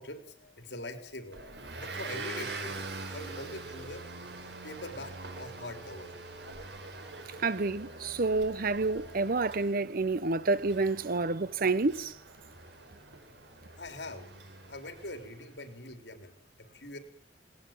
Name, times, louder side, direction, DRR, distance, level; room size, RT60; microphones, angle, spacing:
voice 1, 0.0-4.0 4.6-6.1 13.8-14.3 14.6-17.0, left 1 dB, 75° left, 4.1 m, -44 dB
Motor vehicle (road) / Engine, 1.3-15.5, right 3 dB, 80° right, 4.1 m, -44 dB
voice 2, 7.4-12.1, right 3 dB, 55° right, 0.8 m, -29 dB
19.5 x 18.0 x 9.3 m
head